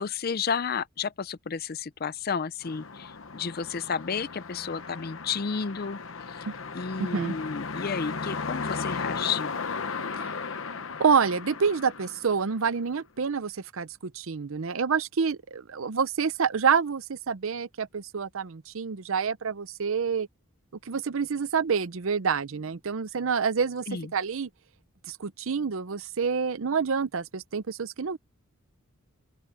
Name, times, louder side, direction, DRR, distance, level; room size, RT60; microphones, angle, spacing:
voice 1, 0.0-6.0 6.3-6.5 6.7-9.5 23.9-24.1, left 6 dB, 45° left, 0.5 m, -32 dB
sound 1, 2.6-12.9, left 4 dB, 70° left, 1.0 m, -36 dB
voice 2, 7.0-7.3 10.2-10.4 11.0-20.3 20.9-23.9 24.1-24.5 25.1-28.2, right 6 dB, 70° right, 0.6 m, -27 dB
open air
head